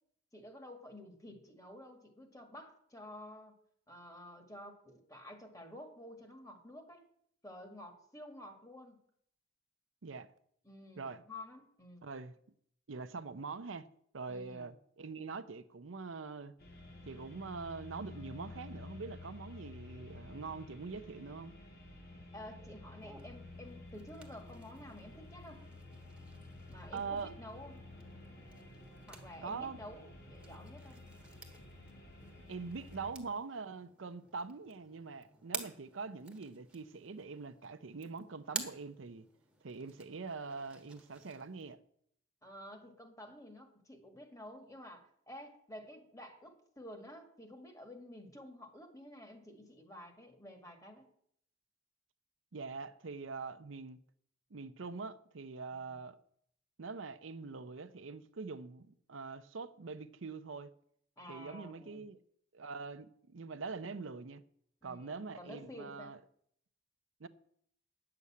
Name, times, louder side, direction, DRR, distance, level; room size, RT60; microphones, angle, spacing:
voice 1, 0.3-3.6 3.9-7.1 7.4-9.0 10.6-12.1 14.3-14.7 22.3-25.6 26.7-27.8 29.1-31.0 42.4-51.1 61.2-62.0 64.8-66.1, left 1 dB, 15° left, 1.8 m, -51 dB
voice 2, 12.0-12.4 12.9-13.9 14.1-16.5 17.1-21.5 26.9-27.3 29.4-29.8 32.5-39.3 39.6-41.8 52.5-54.0 54.5-56.2 56.8-60.7 61.3-62.2 62.5-64.4 64.8-66.2 67.2-67.3, right 4 dB, 80° right, 0.7 m, -44 dB
sound 1, 16.6-33.1, left 2 dB, 55° left, 2.9 m, -52 dB
sound 2, 23.0-41.7, right 3 dB, 5° right, 1.3 m, -51 dB
9.7 x 6.8 x 8.4 m
head